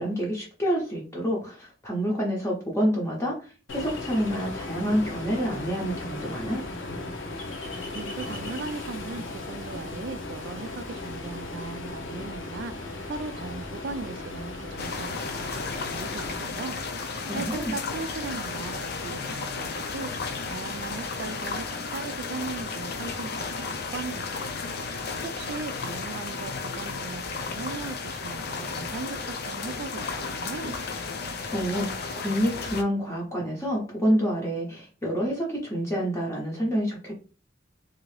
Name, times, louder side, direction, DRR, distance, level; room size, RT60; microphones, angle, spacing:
voice 1, 0.0-6.6 17.2-17.7 31.5-37.1, equal, 15° left, -3 dB, 0.6 m, -28 dB
Ocean, 3.7-16.3, left 2 dB, 80° left, 0.7 m, -36 dB
voice 2, 7.9-16.8 17.3-20.1 20.4-24.5 25.2-30.8, right 4 dB, 60° right, 13 dB, 0.3 m, -38 dB
sound 1, 14.8-32.8, left 4 dB, 55° left, 0.5 m, -33 dB
2.7 x 2.5 x 3.2 m, 0.37 s
head